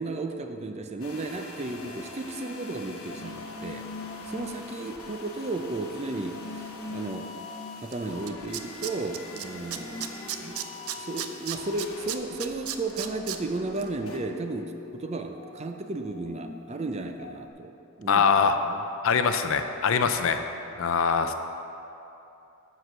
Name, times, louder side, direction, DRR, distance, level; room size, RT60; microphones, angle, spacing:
voice 1, 0.0-3.9 4.3-7.3 7.8-10.0 10.4-10.6 11.0-17.7 18.0-18.3, right 2 dB, 30° right, 5 dB, 0.5 m, -34 dB
sound 1, 1.0-14.2, left 3 dB, 80° left, 1.1 m, -44 dB
sound 2, 1.6-17.5, left 3 dB, 30° left, 0.8 m, -44 dB
Tools, 7.9-8.0 8.3-9.4 9.7-13.4 13.8-13.9, right 11 dB, 80° right, 0.5 m, -33 dB
voice 2, 18.1-18.6 19.0-20.4 20.8-21.3, left 6 dB, 60° left, 8 dB, 0.5 m, -23 dB
7.8 x 6.1 x 6.2 m, 2.9 s
head